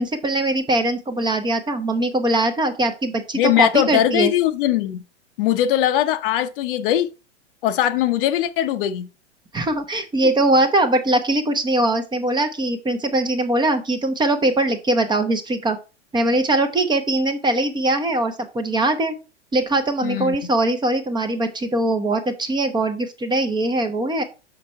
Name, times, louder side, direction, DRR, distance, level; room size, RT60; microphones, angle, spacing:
voice 1, 0.0-4.3 9.5-15.8 16.1-19.1 19.5-24.2, right 1 dB, 10° right, 0.9 m, -21 dB
voice 2, 3.3-5.0 5.4-7.1 7.6-9.1 20.0-20.3, left 12 dB, 50° left, 0.8 m, -20 dB
6.1 x 5.9 x 4.3 m
hypercardioid pair, 110°, 35 cm